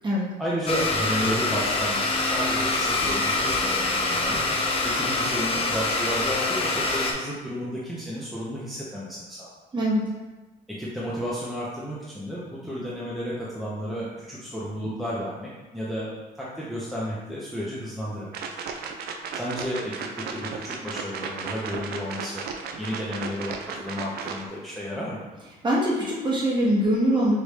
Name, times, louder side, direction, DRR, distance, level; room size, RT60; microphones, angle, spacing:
voice 1, 0.4-4.4 4.8-9.5 10.7-16.1 16.4-18.5 19.3-22.4 22.8-25.2, equal, ahead, -8 dB, 0.7 m, -32 dB
Domestic sounds home sounds, 0.7-7.1, left 2 dB, 35° left, 0.6 m, -25 dB
voice 2, 9.7-10.1 25.6-27.4, equal, 25° right, -5 dB, 1.2 m, -23 dB
sound 1, 18.3-24.5, right 5 dB, 65° right, 0.5 m, -35 dB
4.9 x 2.5 x 3.2 m, 1.2 s
cardioid pair, 110°, 17 cm